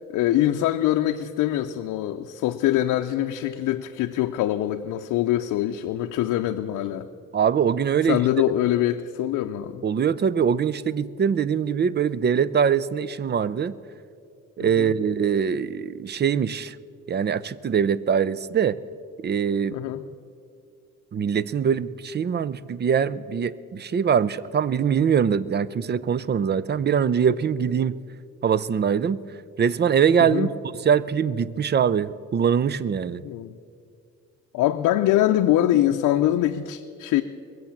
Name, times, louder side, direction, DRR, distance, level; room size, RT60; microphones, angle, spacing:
voice 1, 0.1-7.1 8.1-9.8 14.6-14.9 19.7-20.0 30.2-30.5 33.2-33.6 34.5-37.2, left 13 dB, 90° left, 6 dB, 0.6 m, -23 dB
voice 2, 7.3-8.2 9.8-13.7 14.6-16.8 17.1-18.8 19.2-19.8 21.1-28.0 28.4-29.2 29.6-30.5 30.7-33.2, right 7 dB, 35° right, 19 dB, 0.5 m, -23 dB
21.5 x 7.8 x 7.2 m, 2.4 s
cardioid pair, 90°, 30 cm